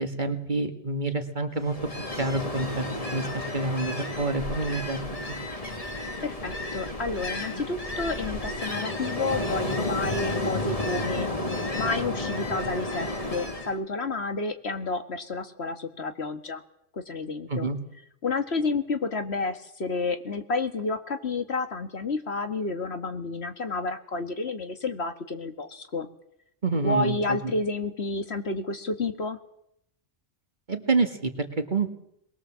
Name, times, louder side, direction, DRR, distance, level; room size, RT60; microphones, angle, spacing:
voice 1, 0.0-1.7 2.2-5.4 17.5-17.8 26.6-27.4 30.7-31.3 31.6-31.9, right 3 dB, 40° right, 6 dB, 2.0 m, -28 dB
Ocean, 1.6-13.8, left 1 dB, 30° left, 2.2 m, -32 dB
voice 2, 6.2-11.3 11.7-16.6 16.9-17.7 18.2-26.1 26.8-29.4, left 3 dB, 60° left, 7 dB, 1.9 m, -30 dB
22.5 x 20.5 x 7.4 m, 0.76 s
omnidirectional pair, 1.3 m